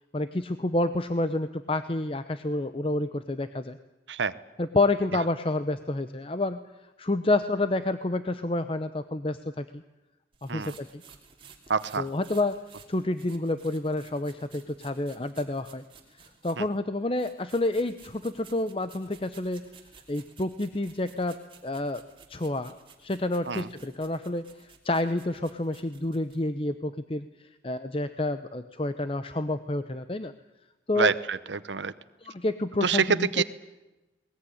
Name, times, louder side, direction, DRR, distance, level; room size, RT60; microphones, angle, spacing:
voice 1, 0.1-3.8 4.6-6.6 7.0-9.8 10.4-11.0 12.0-12.5 12.9-15.8 16.4-19.7 20.1-21.4 21.6-22.0 22.3-24.4 24.8-27.3 27.6-30.3 30.9-31.1 32.2-33.4, left 2 dB, 30° left, 11 dB, 0.7 m, -29 dB
sound 1, 10.3-16.8 17.2-26.4, right 6 dB, 30° right, 3.1 m, -55 dB
voice 2, 11.7-12.1 16.6-16.7 23.5-23.7 30.9-31.9 32.8-33.4, right 5 dB, 85° right, 14 dB, 0.9 m, -27 dB
21.0 x 20.0 x 9.9 m, 1.0 s
head